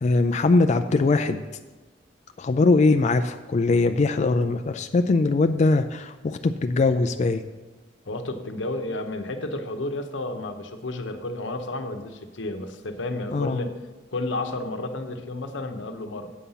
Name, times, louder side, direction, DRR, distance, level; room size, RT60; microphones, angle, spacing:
voice 1, 0.0-1.4 2.4-7.4 13.3-13.6, left 3 dB, 40° left, 8 dB, 0.3 m, -21 dB
voice 2, 8.1-13.7 14.1-16.3, left 2 dB, 90° left, 6 dB, 0.9 m, -31 dB
8.4 x 5.7 x 6.8 m, 1.2 s
head